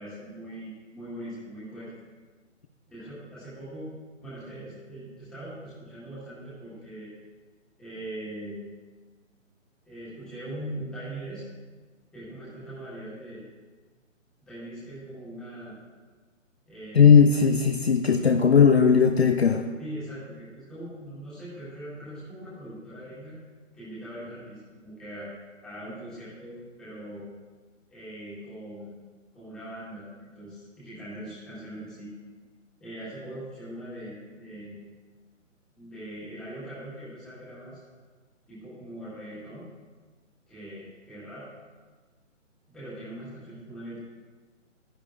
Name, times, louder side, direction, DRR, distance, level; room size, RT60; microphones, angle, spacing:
voice 1, 0.0-1.9 2.9-3.9 4.2-7.1 7.8-8.6 9.8-11.5 12.1-13.4 14.5-15.7 16.7-17.2 18.2-18.6 19.8-23.4 23.7-25.3 25.6-27.2 27.9-28.9 29.3-32.1 32.8-34.8 35.7-37.8 38.5-39.7 40.5-41.5 42.7-44.0, right 1 dB, ahead, -12 dB, 1.4 m, -41 dB
voice 2, 16.9-19.6, left 6 dB, 55° left, 5 dB, 0.6 m, -18 dB
12.5 x 10.0 x 2.4 m, 1.4 s
hypercardioid pair, 170°, 39 cm